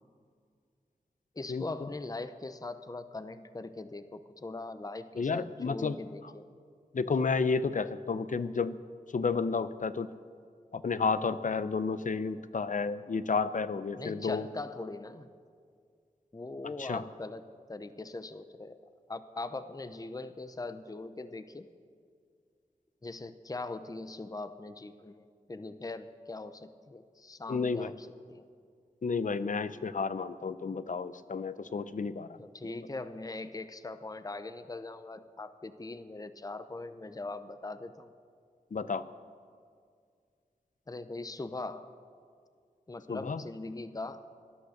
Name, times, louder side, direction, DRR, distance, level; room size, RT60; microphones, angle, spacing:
voice 1, 1.4-6.4 14.0-15.3 16.3-18.8 19.1-21.7 23.0-28.5 32.4-38.1 40.9-41.9 42.9-44.2, left 2 dB, 25° left, 11 dB, 0.7 m, -41 dB
voice 2, 5.2-6.0 6.9-8.8 9.1-10.1 10.7-14.4 16.8-17.0 27.5-27.9 29.0-32.4 32.6-32.7 38.7-39.0 43.1-43.4, left 4 dB, 60° left, 14 dB, 0.6 m, -31 dB
18.0 x 11.5 x 6.6 m, 2.1 s
wide cardioid pair, 65°, 15 cm